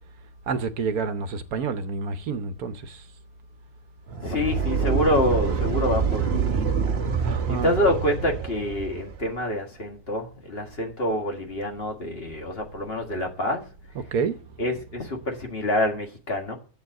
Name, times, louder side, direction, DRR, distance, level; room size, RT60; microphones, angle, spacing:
voice 1, 0.5-3.0 7.2-7.7 13.9-14.4, right 5 dB, 75° right, 1.3 m, -28 dB
sound 1, 4.1-9.3, right 6 dB, 45° right, 1.2 m, -26 dB
voice 2, 4.2-7.0 7.6-13.6 14.6-16.5, left 1 dB, 40° left, 2.0 m, -27 dB
7.9 x 7.3 x 7.6 m
omnidirectional pair, 1.6 m